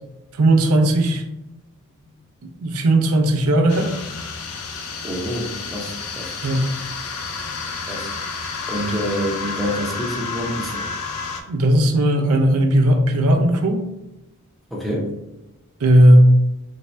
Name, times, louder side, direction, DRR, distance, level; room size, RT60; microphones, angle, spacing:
voice 1, 0.3-1.2 2.4-3.9 6.4-6.7 11.5-13.9 15.8-16.3, right 1 dB, 90° right, 4 dB, 0.5 m, -16 dB
sound 1, 3.7-11.4, left 4 dB, 85° left, 0.5 m, -30 dB
voice 2, 4.9-6.4 7.4-7.6 7.9-8.1 8.7-10.9 14.7-15.1, equal, ahead, -3 dB, 0.6 m, -27 dB
3.2 x 2.7 x 3.2 m, 0.95 s
head